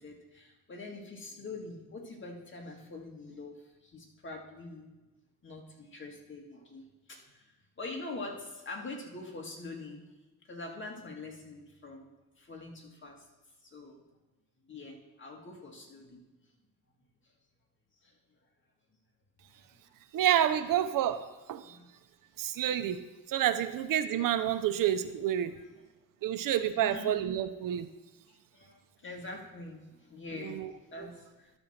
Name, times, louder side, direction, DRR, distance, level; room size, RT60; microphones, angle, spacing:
voice 1, 0.0-4.9 5.4-7.4 7.8-10.1 10.5-12.1 12.4-13.2 13.6-14.0 14.7-16.2 18.0-18.1 21.6-21.9 22.8-22.9 26.3-26.4 26.8-27.2 28.3-31.5, left 2 dB, 35° left, 1 dB, 1.9 m, -44 dB
voice 2, 20.1-21.8 22.4-23.0 23.3-25.6 26.2-27.9 30.4-30.7, right 11 dB, 65° right, 11 dB, 0.6 m, -29 dB
11.5 x 4.3 x 6.5 m, 1.1 s
cardioid pair, 100°, 36 cm